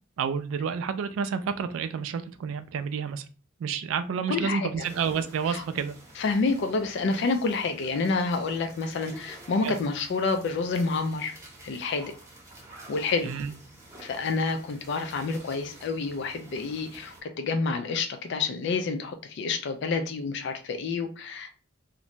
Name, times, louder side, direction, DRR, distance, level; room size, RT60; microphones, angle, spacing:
voice 1, 0.2-3.3 3.6-6.0 9.6-9.8 13.2-13.5, right 6 dB, 85° right, 0.3 m, -29 dB
voice 2, 4.3-4.9 5.5-5.6 6.2-11.4 11.6-12.1 12.9-13.4 14.0-21.5, left 4 dB, 60° left, 0.3 m, -28 dB
sound 1, 4.8-17.2, right 1 dB, 15° right, 0.7 m, -49 dB
2.5 x 2.1 x 2.8 m
head